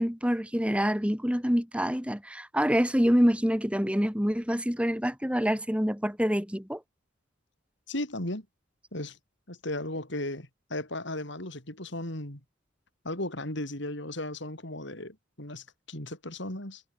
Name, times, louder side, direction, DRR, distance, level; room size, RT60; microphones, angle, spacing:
voice 1, 0.0-6.8, equal, 5° right, 3.1 m, -26 dB
voice 2, 7.9-8.5 8.9-9.2 9.5-12.4 13.0-16.8, left 1 dB, 60° left, 5.6 m, -36 dB
head